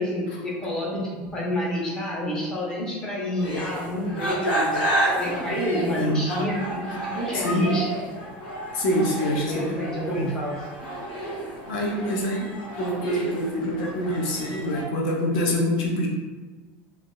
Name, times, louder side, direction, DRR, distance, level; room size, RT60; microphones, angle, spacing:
voice 1, 0.0-4.9 5.2-7.9 9.3-10.5, left 1 dB, 10° left, -6 dB, 0.7 m, -28 dB
sound 1, 3.4-14.8, right 1 dB, 75° left, 1.0 m, -30 dB
voice 2, 7.3-7.7 8.7-9.6 10.1-10.3 11.4-16.1, equal, 60° left, -1 dB, 0.7 m, -26 dB
4.7 x 2.4 x 2.2 m, 1.3 s
cardioid pair, 175°, 6 cm